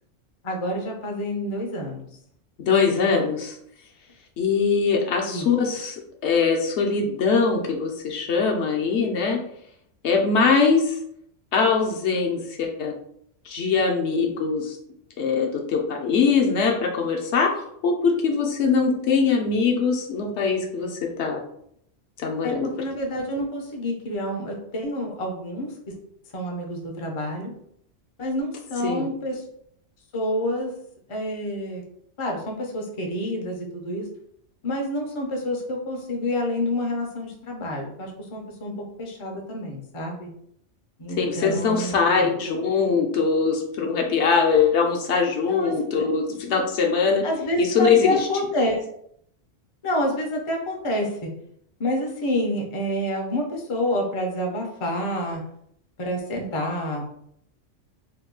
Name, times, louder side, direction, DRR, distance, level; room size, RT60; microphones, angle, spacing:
voice 1, 0.4-2.1 5.3-5.5 22.4-25.9 26.3-27.5 28.2-29.4 30.1-30.7 31.1-31.8 32.2-34.1 34.6-40.3 41.0-42.3 45.4-46.0 47.2-48.9 49.8-51.3 51.8-55.4 56.0-57.1, left 1 dB, 40° left, 1 dB, 0.5 m, -28 dB
voice 2, 2.6-3.6 4.4-9.4 10.0-11.0 11.5-12.9 13.5-14.8 15.2-17.5 17.8-21.4 22.2-22.7 28.8-29.1 41.2-47.2 47.6-48.3, left 5 dB, 70° left, 1 dB, 0.8 m, -22 dB
2.9 x 2.2 x 3.6 m, 0.70 s
omnidirectional pair, 1.3 m